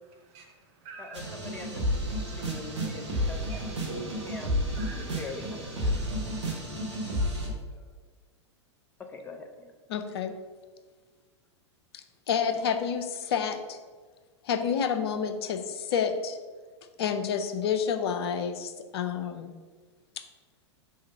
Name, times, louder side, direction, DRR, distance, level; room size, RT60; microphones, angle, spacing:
voice 1, 0.1-1.2 2.3-2.5 3.5-5.2, right 3 dB, 45° right, 1 dB, 1.4 m, -45 dB
voice 2, 1.0-3.6 4.2-4.7 4.9-6.0 7.7-7.9 9.0-9.7, left 3 dB, 15° left, 3 dB, 0.8 m, -43 dB
sound 1, 1.1-7.5, equal, 70° right, 1.5 m, -31 dB
voice 3, 9.9-10.3 12.3-13.8 14.4-16.4 17.0-19.5, left 7 dB, 60° left, 8 dB, 0.6 m, -29 dB
4.9 x 3.8 x 5.4 m, 1.4 s
figure-of-eight pair, 95°, 15 cm